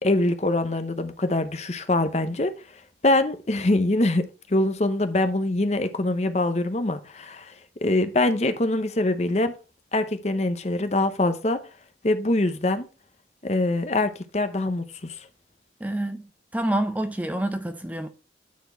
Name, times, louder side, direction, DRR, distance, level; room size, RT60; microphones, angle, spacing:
voice 1, 0.0-2.5 3.0-7.5 7.8-9.5 9.9-11.6 12.0-12.9 13.4-14.8, left 2 dB, 35° left, 0.7 m, -23 dB
voice 2, 15.8-16.3 16.5-18.1, right 1 dB, 10° right, 0.5 m, -27 dB
9.3 x 4.3 x 4.4 m
head